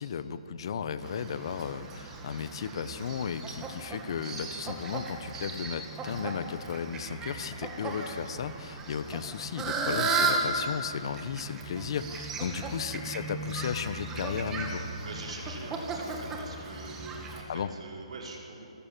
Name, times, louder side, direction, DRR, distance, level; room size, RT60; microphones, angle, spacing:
voice 1, 0.0-14.8 17.5-17.7, left 7 dB, 50° left, 13 dB, 1.1 m, -35 dB
Fowl, 1.0-17.4, right 3 dB, 15° right, 2.2 m, -35 dB
voice 2, 15.0-18.7, right 3 dB, 75° right, -1 dB, 5.4 m, -43 dB
27.5 x 14.0 x 7.5 m, 2.6 s
hypercardioid pair, 160°, 3 cm